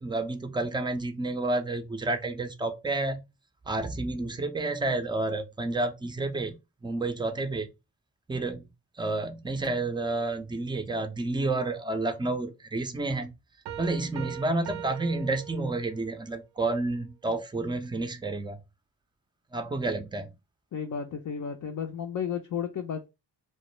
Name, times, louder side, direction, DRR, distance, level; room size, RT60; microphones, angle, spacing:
voice 1, 0.0-3.2 3.7-6.5 6.8-7.7 8.3-8.7 9.0-13.3 13.8-18.6 19.5-20.3, right 2 dB, 10° right, 0.4 m, -30 dB
sound 1, 13.7-16.2, right 10 dB, 65° right, 0.5 m, -41 dB
voice 2, 20.7-23.1, left 7 dB, 45° left, 0.5 m, -33 dB
2.1 x 2.1 x 3.0 m
supercardioid pair, 55°, 44 cm